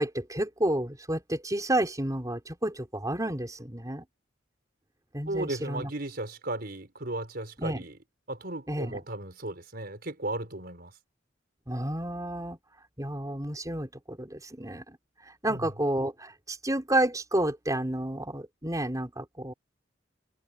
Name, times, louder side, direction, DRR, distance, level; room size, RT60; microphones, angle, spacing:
voice 1, 0.0-4.0 5.1-5.9 7.6-7.8 8.7-9.0 11.7-12.6 13.0-15.0 15.2-19.5, right 1 dB, 20° right, 4.7 m, -30 dB
voice 2, 5.3-8.0 8.3-10.9 15.5-15.7, right 2 dB, 55° right, 5.1 m, -35 dB
head